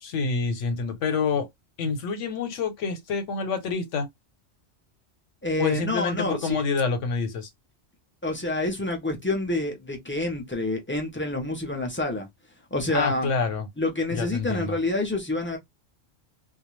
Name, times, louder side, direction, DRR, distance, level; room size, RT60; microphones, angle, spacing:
voice 1, 0.0-1.5 1.8-4.1 5.6-7.5 12.9-13.7 14.1-14.7, left 5 dB, 85° left, 1.0 m, -27 dB
voice 2, 5.4-6.6 8.2-12.3 12.7-13.3 13.8-15.6, left 2 dB, 15° left, 0.4 m, -28 dB
2.3 x 2.1 x 3.0 m
omnidirectional pair, 1.2 m